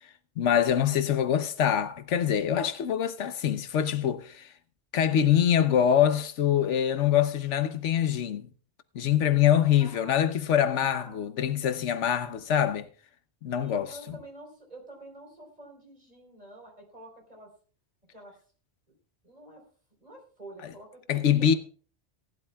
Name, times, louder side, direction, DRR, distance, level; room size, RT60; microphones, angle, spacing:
voice 1, 0.0-4.5 4.9-8.5 8.9-12.9 13.4-14.0 21.1-21.5, left 9 dB, 85° left, 1.1 m, -24 dB
voice 2, 9.8-10.3 10.7-11.5 13.6-17.5 18.1-18.4 19.2-19.6 20.0-21.6, right 1 dB, 35° right, 4.2 m, -48 dB
17.5 x 12.0 x 2.3 m
omnidirectional pair, 1.2 m